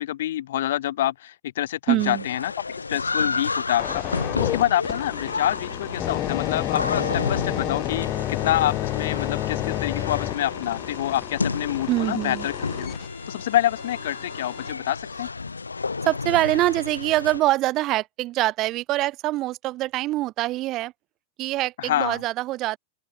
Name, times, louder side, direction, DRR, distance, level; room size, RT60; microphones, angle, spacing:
voice 1, 0.0-4.0 4.3-12.9 13.3-15.3 21.8-22.2, left 13 dB, 60° left, 1.4 m, -27 dB
voice 2, 1.9-2.2 11.9-12.5 16.0-20.9 21.4-22.8, right 17 dB, 35° right, 0.4 m, -24 dB
sound 1, 2.0-17.4, left 4 dB, 80° left, 1.0 m, -31 dB
sound 2, 3.8-14.7 15.3-15.5, left 14 dB, 35° left, 0.6 m, -31 dB
open air
figure-of-eight pair, 90°, 0 cm